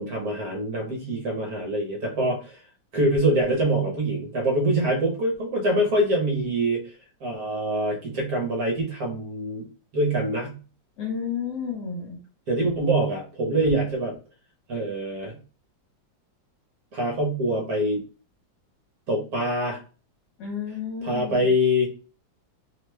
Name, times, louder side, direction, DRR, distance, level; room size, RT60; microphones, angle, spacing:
voice 1, 0.0-2.6 2.9-6.9 7.2-9.7 9.9-10.6 12.5-14.1 14.7-15.4 16.9-18.0 19.1-19.8 21.0-21.9, right 1 dB, 60° right, 0 dB, 1.1 m, -24 dB
voice 2, 11.0-12.2 20.4-21.5, left 6 dB, 60° left, -1 dB, 1.4 m, -32 dB
3.1 x 2.2 x 3.1 m, 0.36 s
omnidirectional pair, 2.1 m